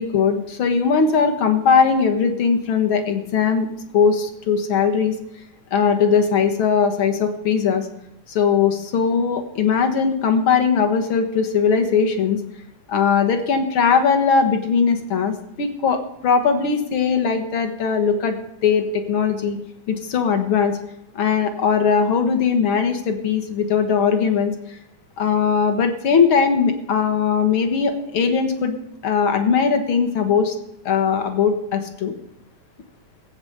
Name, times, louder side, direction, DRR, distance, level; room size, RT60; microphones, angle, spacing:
voice 1, 0.0-3.7 3.9-5.2 5.7-7.9 8.3-12.4 12.9-18.4 18.6-19.6 19.9-20.8 21.1-24.5 25.2-28.8 29.0-30.6 30.9-32.1, left 6 dB, 55° left, 6 dB, 1.8 m, -19 dB
15.5 x 8.1 x 7.9 m, 0.81 s
omnidirectional pair, 3.5 m